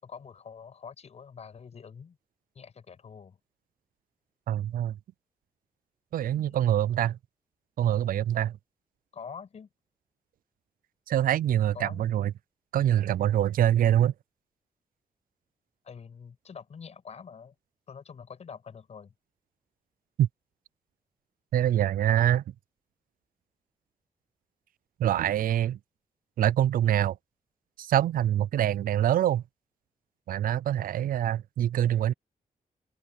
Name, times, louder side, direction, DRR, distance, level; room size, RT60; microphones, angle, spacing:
voice 1, 0.0-2.2 2.5-3.4 6.3-6.6 9.1-9.7 11.7-12.1 15.8-17.5 17.9-19.1, left 6 dB, 50° left, 5.9 m, -45 dB
voice 2, 4.5-5.0 6.1-7.2 7.8-8.6 11.1-12.3 12.7-14.1 20.2-20.3 21.5-22.4 25.0-25.8 26.4-27.2 27.8-29.4 30.3-32.1, right 11 dB, 80° right, 0.4 m, -25 dB
open air
wide cardioid pair, 175°, 14 cm